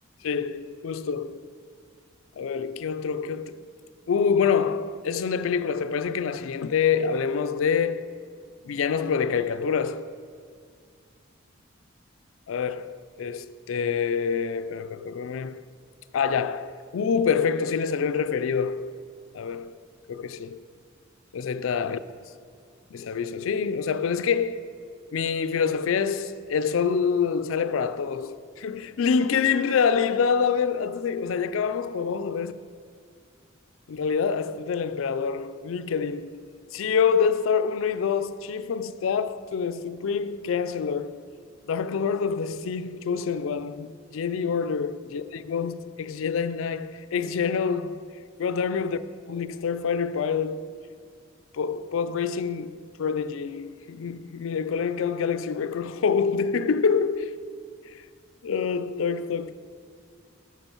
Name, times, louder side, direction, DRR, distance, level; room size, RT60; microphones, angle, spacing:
voice 1, 0.2-1.5 2.4-3.6 4.1-8.1 8.6-10.2 12.5-15.6 16.1-19.0 19.3-19.8 20.1-20.6 21.3-22.0 22.9-24.7 25.1-32.5 33.9-36.4 36.7-41.3 41.7-48.1 48.4-49.0 49.3-50.7 51.5-57.4 57.9-58.0 58.4-59.5, left 6 dB, 85° left, 0.4 m, -26 dB
11.0 x 6.0 x 4.5 m
head